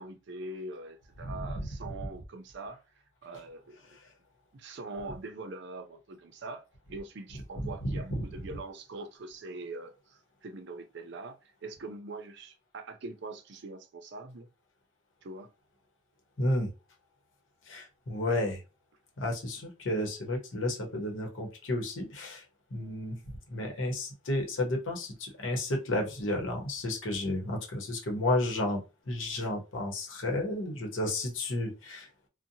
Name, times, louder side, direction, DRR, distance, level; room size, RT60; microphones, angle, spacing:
voice 1, 0.0-2.8 3.2-3.8 4.5-6.6 6.9-11.4 11.6-14.5 15.2-15.5 19.6-19.7, right 2 dB, 65° right, 0.5 m, -43 dB
voice 2, 7.8-8.2 16.4-16.7 17.7-18.6 19.2-22.4 22.7-23.2 23.5-28.8 29.1-32.1, left 1 dB, 85° left, 0.9 m, -32 dB
2.7 x 2.1 x 2.6 m
head